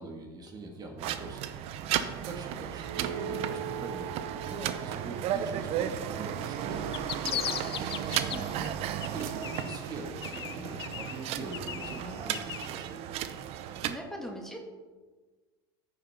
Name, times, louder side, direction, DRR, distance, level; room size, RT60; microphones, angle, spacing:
voice 1, 0.0-1.4 2.2-8.1 9.0-13.0, right 3 dB, 30° right, 2 dB, 1.9 m, -42 dB
sound 1, 1.0-14.0, right 10 dB, 50° right, 0.7 m, -34 dB
sound 2, 2.8-7.6, right 8 dB, 85° right, 0.4 m, -42 dB
sound 3, 6.7-8.7 9.0-9.9 10.2-12.7, left 11 dB, 90° left, 0.5 m, -38 dB
voice 2, 13.8-14.6, equal, 5° left, 0 dB, 1.9 m, -40 dB
14.5 x 5.5 x 4.3 m, 1.4 s
hypercardioid pair, 95°, 13 cm